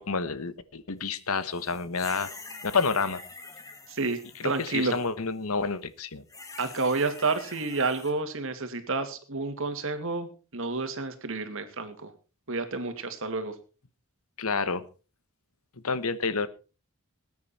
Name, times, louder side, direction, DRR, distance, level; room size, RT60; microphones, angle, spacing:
voice 1, 0.0-2.3 2.6-3.2 4.4-6.2 14.4-14.8 15.8-16.5, left 4 dB, 75° left, 14 dB, 1.2 m, -29 dB
sound 1, 1.4-5.1 6.3-8.1, left 3 dB, 15° left, 2.1 m, -45 dB
voice 2, 3.9-5.0 6.6-12.1 12.5-13.6, right 3 dB, 60° right, 8 dB, 2.2 m, -30 dB
19.5 x 9.5 x 4.3 m, 0.34 s
head